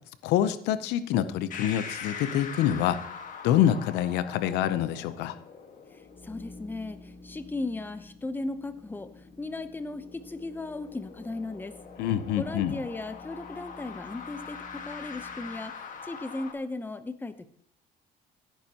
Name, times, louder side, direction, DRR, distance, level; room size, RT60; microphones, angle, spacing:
voice 1, 0.2-3.0 3.4-5.4 12.0-12.8, left 11 dB, 90° left, 13 dB, 0.7 m, -26 dB
sound 1, 1.5-16.5, left 6 dB, 50° left, 1.5 m, -44 dB
sound 2, 5.8-15.7, left 2 dB, 30° left, 3.7 m, -52 dB
voice 2, 5.9-11.8 12.4-17.5, left 2 dB, 10° left, 11 dB, 0.8 m, -37 dB
16.0 x 9.1 x 2.9 m, 0.63 s
cardioid pair, 110°, 17 cm